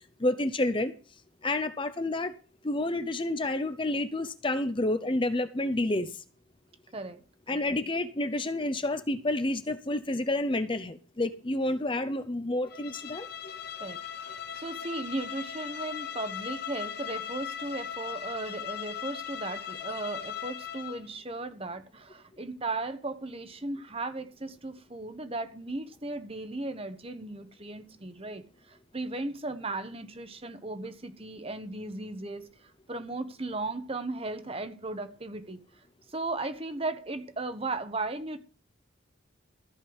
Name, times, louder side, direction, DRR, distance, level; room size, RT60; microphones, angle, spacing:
voice 1, 0.2-0.9 1.4-2.3 2.6-6.1 7.5-13.3, left 1 dB, 25° left, 10 dB, 0.7 m, -29 dB
Bowed string instrument, 12.7-21.1, left 8 dB, 50° left, 1.1 m, -38 dB
voice 2, 13.8-32.5 32.9-35.6 36.1-38.4, right 2 dB, 30° right, 10 dB, 1.1 m, -36 dB
14.5 x 5.4 x 8.0 m, 0.36 s
head